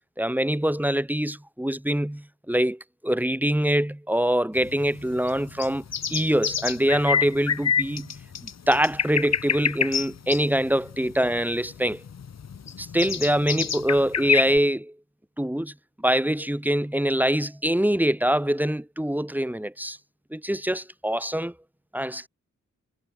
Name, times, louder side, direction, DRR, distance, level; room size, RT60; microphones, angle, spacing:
voice 1, 0.2-5.8 6.1-8.2 8.4-12.0 12.8-14.9 15.4-20.0 20.3-21.5 21.9-22.3, equal, 5° right, 3.6 m, -24 dB
sound 1, 4.6-14.6, left 7 dB, 60° left, 1.4 m, -28 dB
wide cardioid pair, 160°, 31 cm